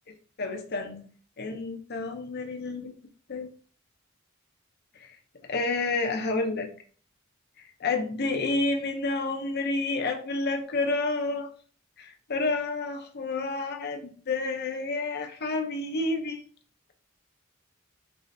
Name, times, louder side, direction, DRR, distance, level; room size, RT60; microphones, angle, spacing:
voice 1, 0.4-1.0 1.4-2.9 3.3-3.5 5.5-6.7 7.8-11.5 12.0-16.4, left 3 dB, 50° left, 4 dB, 0.7 m, -29 dB
5.5 x 3.2 x 2.6 m, 0.43 s
head